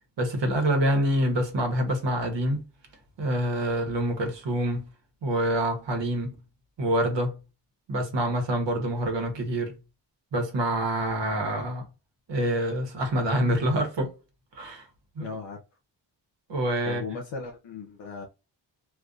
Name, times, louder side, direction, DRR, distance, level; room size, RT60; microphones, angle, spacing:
voice 1, 0.2-2.6 3.2-4.9 5.2-6.4 6.8-7.4 7.9-9.7 10.3-11.9 12.3-14.1 14.5-14.9 15.2-15.3 16.5-17.0, right 1 dB, 70° right, 1.0 m, -26 dB
voice 2, 15.2-15.6 16.8-18.3, left 4 dB, 80° left, 0.7 m, -36 dB
2.5 x 2.4 x 2.3 m
cardioid pair, 75°, 45 cm